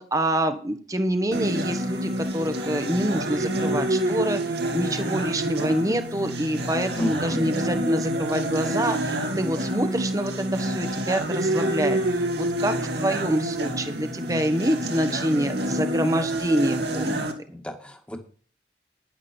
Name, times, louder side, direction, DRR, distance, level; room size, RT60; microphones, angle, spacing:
voice 1, 0.0-17.2, right 1 dB, 20° right, 7 dB, 1.2 m, -26 dB
sound 1, 1.3-17.3, right 1 dB, 60° right, 2.4 m, -27 dB
voice 2, 7.0-7.4 17.5-18.2, left 1 dB, 5° left, 4 dB, 1.8 m, -31 dB
11.5 x 11.0 x 4.5 m, 0.43 s
head